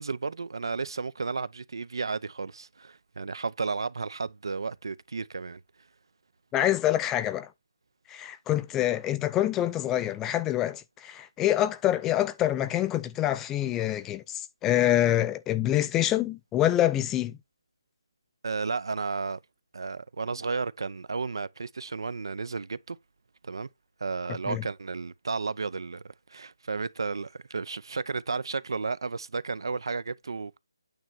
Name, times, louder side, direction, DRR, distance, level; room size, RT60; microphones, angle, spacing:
voice 1, 0.0-5.6 18.4-19.4 19.7-23.0 23.4-23.7 24.0-30.6, right 4 dB, 70° right, 0.5 m, -33 dB
voice 2, 6.5-7.5 8.1-17.4 24.5-24.6, left 13 dB, 10° left, 0.3 m, -26 dB
8.8 x 3.1 x 5.8 m
hypercardioid pair, 160°, 2 cm